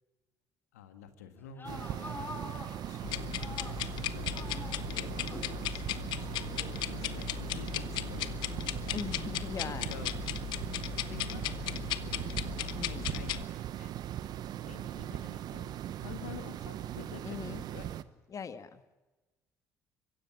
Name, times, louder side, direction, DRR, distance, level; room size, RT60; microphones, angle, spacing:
voice 1, 0.7-3.6 4.0-4.5 4.8-9.0 9.9-10.1 11.0-12.2 12.9-14.0 14.6-17.9, left 8 dB, 85° left, 8 dB, 1.7 m, -50 dB
sound 1, 1.4-4.0 4.3-5.6 6.2-7.2, left 3 dB, 25° left, 6.8 m, -46 dB
sound 2, 1.6-18.0, right 11 dB, 60° right, 1.0 m, -39 dB
sound 3, 3.0-13.4, left 14 dB, 65° left, 0.9 m, -37 dB
voice 2, 8.9-10.0 12.7-13.1 17.2-17.6 18.3-19.0, left 6 dB, 40° left, 11 dB, 1.5 m, -40 dB
23.5 x 16.0 x 10.0 m, 1.1 s
hypercardioid pair, 55°, 8 cm